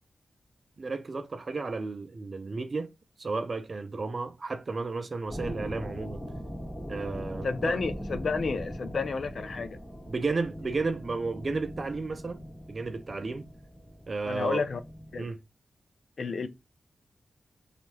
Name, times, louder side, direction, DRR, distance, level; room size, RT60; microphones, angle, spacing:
voice 1, 0.8-2.9 3.2-6.2 6.9-7.8 10.1-12.4 12.7-13.5 14.1-14.7 15.2-15.4, right 3 dB, 45° right, 0.5 m, -33 dB
sound 1, 5.3-15.2, equal, ahead, 1.5 m, -40 dB
voice 2, 7.4-9.8 14.3-14.8 15.1-15.3 16.2-16.5, left 4 dB, 65° left, 0.4 m, -31 dB
2.7 x 2.4 x 3.1 m
wide cardioid pair, 90°, 0 cm